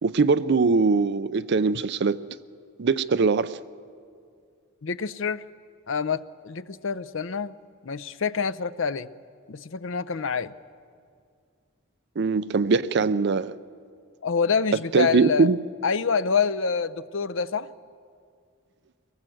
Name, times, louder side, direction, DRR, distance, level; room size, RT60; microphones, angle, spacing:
voice 1, 0.0-2.2 2.8-3.6 12.2-13.6 14.9-15.6, right 4 dB, 55° right, 15 dB, 0.5 m, -22 dB
voice 2, 4.8-5.4 5.9-7.6 7.8-9.1 9.5-10.5 14.2-15.5 15.8-17.7, left 5 dB, 65° left, 13 dB, 0.6 m, -26 dB
24.0 x 19.0 x 7.8 m, 2.2 s
head